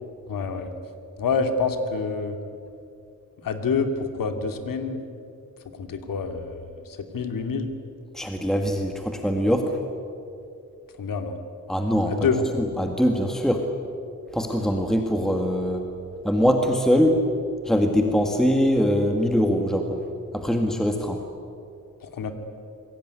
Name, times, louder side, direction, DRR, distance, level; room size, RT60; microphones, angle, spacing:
voice 1, 0.3-0.7 1.2-2.4 3.4-5.0 5.8-7.7 11.0-11.3 12.1-12.5 22.0-22.3, left 4 dB, 85° left, 7 dB, 2.7 m, -27 dB
voice 2, 8.1-9.7 11.7-12.3 12.6-13.7 14.3-15.9 16.2-17.2 17.7-20.0 20.3-21.2, equal, ahead, 3 dB, 1.9 m, -22 dB
27.0 x 22.5 x 9.7 m, 2.6 s
wide cardioid pair, 150°, 32 cm